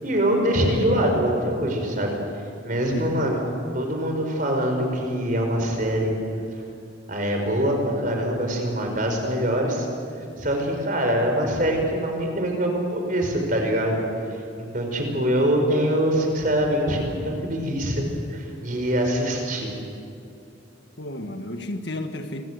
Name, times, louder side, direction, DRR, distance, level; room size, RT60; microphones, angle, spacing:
voice 1, 0.0-2.1 2.6-3.4 3.7-6.1 7.1-9.9 10.4-14.0 14.6-19.7, equal, 45° right, 3 dB, 5.1 m, -24 dB
voice 2, 2.9-3.2 21.0-22.5, left 1 dB, 65° left, 6 dB, 1.7 m, -32 dB
26.5 x 20.5 x 8.1 m, 2.6 s
head